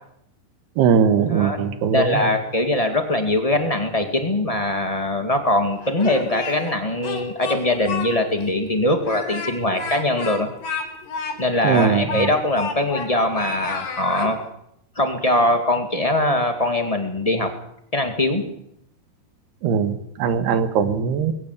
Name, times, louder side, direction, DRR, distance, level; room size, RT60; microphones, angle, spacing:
voice 1, 0.8-2.3 11.6-12.3 19.6-21.3, right 7 dB, 70° right, 10 dB, 3.5 m, -20 dB
voice 2, 1.9-10.5 11.4-14.4 14.9-17.5 17.9-18.4, left 1 dB, 20° left, 5 dB, 0.8 m, -22 dB
Speech, 5.8-6.7 7.0-8.1 8.4-8.5 9.0-13.1 13.4-14.3, left 5 dB, 75° left, 5.6 m, -30 dB
22.0 x 16.5 x 8.3 m, 0.75 s
omnidirectional pair, 4.9 m